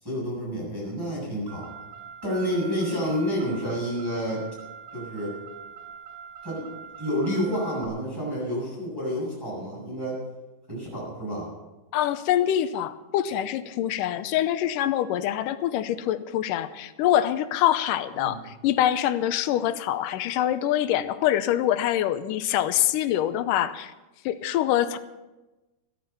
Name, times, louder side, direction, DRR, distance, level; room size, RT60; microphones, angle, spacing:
voice 1, 0.0-1.7 2.2-4.5 4.9-5.4 6.4-6.7 7.0-10.2 10.7-11.5 18.2-18.4, equal, 5° right, -6 dB, 7.3 m, -29 dB
Car, 1.5-7.9, right 7 dB, 75° right, 3.7 m, -43 dB
voice 2, 11.9-23.9 24.3-25.0, left 12 dB, 80° left, 12 dB, 2.3 m, -25 dB
15.0 x 13.5 x 5.7 m, 1.1 s
omnidirectional pair, 3.9 m